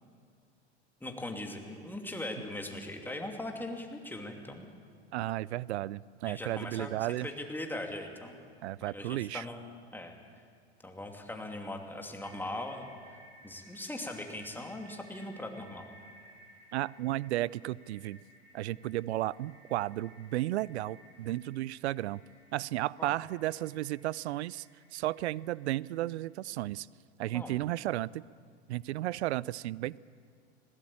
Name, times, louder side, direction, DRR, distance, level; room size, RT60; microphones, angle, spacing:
voice 1, 1.0-4.7 6.2-6.9 7.2-8.4 8.8-9.6 9.9-10.1 10.8-12.9 13.4-15.9 23.0-23.1 27.3-27.6, left 1 dB, 5° left, 2 dB, 2.7 m, -40 dB
voice 2, 5.1-7.3 8.6-9.4 16.7-18.2 18.5-22.2 22.5-24.7 24.9-26.9 27.2-28.2 28.7-30.0, right 15 dB, 80° right, 23 dB, 0.5 m, -33 dB
sound 1, 11.7-26.0, right 1 dB, 55° right, 6.0 m, -59 dB
20.0 x 17.5 x 8.7 m, 2.2 s
hypercardioid pair, 100°, 33 cm